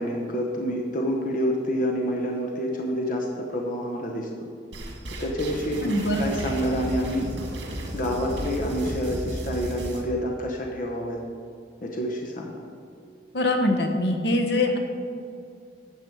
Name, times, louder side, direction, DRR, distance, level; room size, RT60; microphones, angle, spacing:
voice 1, 0.0-4.3 5.2-7.2 7.9-11.2 11.8-12.6, equal, 45° left, 0 dB, 0.9 m, -28 dB
sound 1, 4.7-10.0, right 1 dB, 80° right, 1.9 m, -34 dB
voice 2, 5.8-6.2 13.3-14.8, left 1 dB, 65° left, 3 dB, 1.1 m, -23 dB
12.0 x 7.4 x 4.6 m, 2.5 s
head